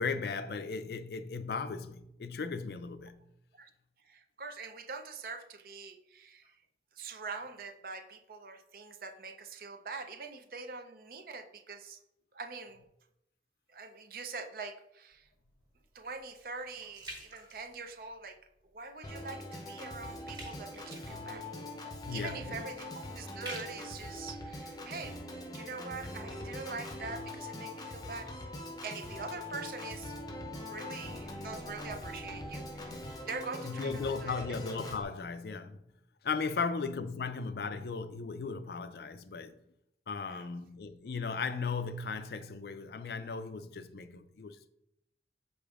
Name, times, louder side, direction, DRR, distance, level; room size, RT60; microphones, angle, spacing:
voice 1, 0.0-3.1 22.1-22.6 33.6-35.8 36.2-39.6 40.1-44.7, left 4 dB, 60° left, 0.4 m, -36 dB
voice 2, 4.1-6.4 6.9-12.0 12.3-12.8 13.7-15.2 15.9-18.4 18.7-21.5 22.1-25.1 25.5-28.3 28.8-30.2 30.6-34.4 40.3-40.5, right 4 dB, 55° right, 0.5 m, -44 dB
sound 1, 15.1-18.4 18.9-19.2 19.5-25.4 26.0-26.1, right 1 dB, 25° right, 1.5 m, -50 dB
Organ, 19.0-35.0, left 1 dB, 20° left, 0.6 m, -43 dB
7.8 x 5.0 x 2.4 m
head